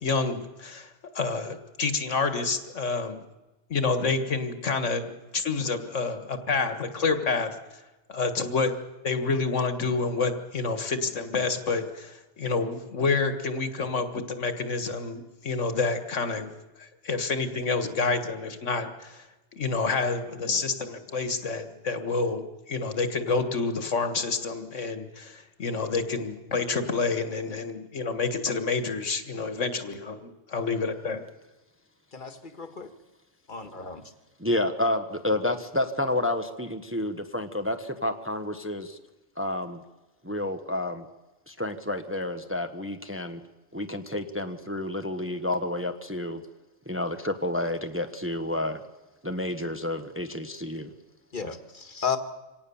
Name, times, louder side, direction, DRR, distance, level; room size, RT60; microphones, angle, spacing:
voice 1, 0.0-3.2 3.7-7.6 8.1-8.7 9.0-19.3 19.5-31.2, left 4 dB, 80° left, 9 dB, 1.9 m, -28 dB
voice 2, 32.1-32.9 33.5-34.0 51.3-52.2, left 6 dB, 40° left, 9 dB, 1.7 m, -33 dB
voice 3, 34.4-39.0 39.4-39.8 40.2-41.1 41.5-43.4 43.7-46.4 46.9-48.8 49.2-50.9, left 1 dB, 10° right, 7 dB, 1.1 m, -30 dB
25.5 x 18.0 x 7.1 m, 1.1 s
omnidirectional pair, 1.3 m